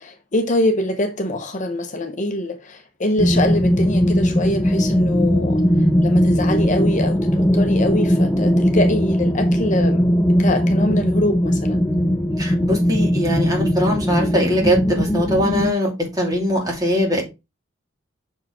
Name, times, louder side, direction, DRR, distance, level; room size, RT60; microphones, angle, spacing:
voice 1, 0.0-5.6 6.0-10.1 10.4-11.8, left 1 dB, 40° left, 0.9 m, -24 dB
sound 1, 3.2-15.7, equal, 10° left, 0.5 m, -19 dB
voice 2, 12.4-17.2, equal, 20° right, 2.6 m, -21 dB
6.4 x 4.8 x 4.3 m
head